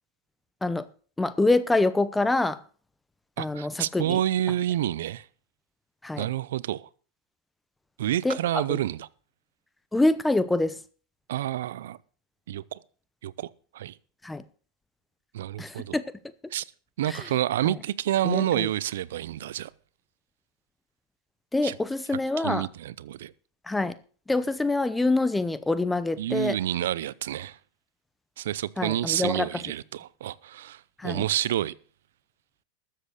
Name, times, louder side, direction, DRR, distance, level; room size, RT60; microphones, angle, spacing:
voice 1, 1.2-2.6 3.4-4.2 6.0-6.3 8.2-8.8 9.9-10.8 14.2-14.4 15.6-16.0 17.1-17.3 17.6-17.7 18.2-18.7 21.5-22.7 23.7-23.9 24.3-26.6 28.8-29.5 31.0-31.2, left 2 dB, 5° left, 0.8 m, -25 dB
voice 2, 3.4-5.3 6.2-6.9 8.0-9.1 11.3-12.0 12.5-12.8 13.2-14.0 15.3-16.0 16.5-16.6 17.0-19.7 21.6-21.7 22.4-23.3 26.2-27.6 28.4-31.7, right 12 dB, 80° right, 0.6 m, -29 dB
13.0 x 7.6 x 6.5 m
supercardioid pair, 130°, 0 cm